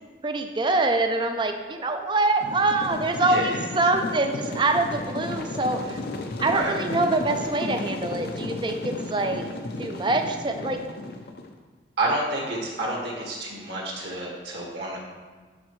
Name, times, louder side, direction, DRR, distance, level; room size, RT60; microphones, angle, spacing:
voice 1, 0.2-6.0 6.4-9.5 9.8-10.8, right 2 dB, 25° right, 6 dB, 0.5 m, -25 dB
sound 1, 2.4-11.5, left 2 dB, 55° left, 0.6 m, -34 dB
voice 2, 3.2-3.6 6.5-6.7 12.0-15.0, right 2 dB, 60° right, -3 dB, 1.9 m, -29 dB
12.5 x 4.3 x 3.1 m, 1.4 s
head